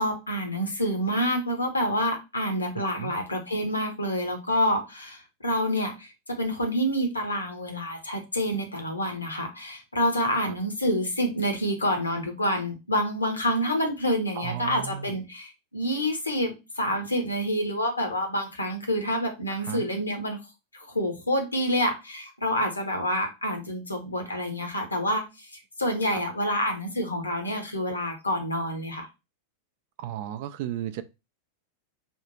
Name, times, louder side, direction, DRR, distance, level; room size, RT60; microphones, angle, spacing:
voice 1, 0.0-20.4 20.7-25.5 25.8-29.1, equal, 80° left, 1.0 m, -28 dB
voice 2, 14.3-15.2 19.5-19.8 26.1-26.2 30.0-31.0, right 11 dB, 50° right, 0.4 m, -34 dB
3.5 x 2.4 x 4.2 m
figure-of-eight pair, 90°, 0 cm